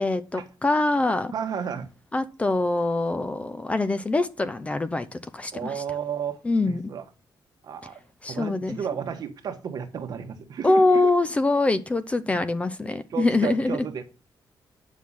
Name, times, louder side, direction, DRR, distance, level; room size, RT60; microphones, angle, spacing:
voice 1, 0.0-1.3 2.1-5.8 6.4-6.8 8.2-8.8 10.6-13.8, left 2 dB, 15° left, 0.5 m, -24 dB
voice 2, 1.3-1.9 5.5-7.0 7.6-8.0 8.3-11.1 13.1-14.0, right 7 dB, 55° right, 1.4 m, -33 dB
9.4 x 6.2 x 5.5 m
wide cardioid pair, 180°, 8 cm